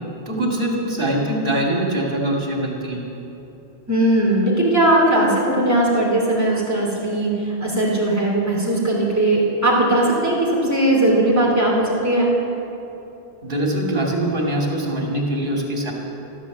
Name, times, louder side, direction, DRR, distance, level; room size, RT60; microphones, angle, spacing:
voice 1, 0.3-3.0 13.4-15.9, right 1 dB, 60° right, -1 dB, 2.6 m, -23 dB
voice 2, 3.9-12.3, right 1 dB, 15° right, -3 dB, 2.9 m, -18 dB
14.0 x 12.5 x 7.3 m, 3.0 s
omnidirectional pair, 1.1 m